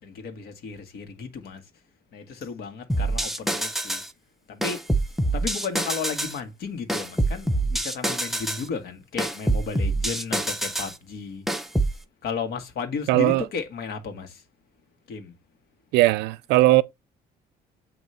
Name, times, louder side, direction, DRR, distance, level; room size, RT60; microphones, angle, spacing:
voice 1, 0.0-1.6 2.1-4.0 4.5-4.9 5.3-11.4 12.2-14.4 15.1-15.3, left 5 dB, 65° left, 1.6 m, -34 dB
sound 1, 2.9-4.1 4.6-6.4 6.9-8.7 9.2-10.9 11.5-12.0, right 1 dB, ahead, 0.6 m, -26 dB
voice 2, 13.1-13.4 15.9-16.8, right 18 dB, 90° right, 0.5 m, -18 dB
8.1 x 2.9 x 4.3 m
cardioid pair, 110°, 17 cm